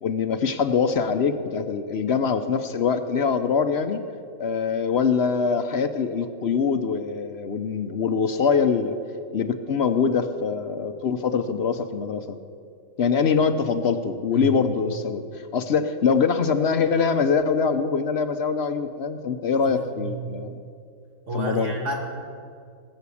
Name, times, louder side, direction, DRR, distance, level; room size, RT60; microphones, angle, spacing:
voice 1, 0.0-4.0 4.4-9.0 9.3-12.4 13.0-20.6 21.3-21.7, left 5 dB, 60° left, 9 dB, 0.9 m, -23 dB
voice 2, 19.5-20.2 21.3-22.0, right 1 dB, 65° right, -1 dB, 2.7 m, -30 dB
19.0 x 7.1 x 8.4 m, 2.3 s
omnidirectional pair, 1.3 m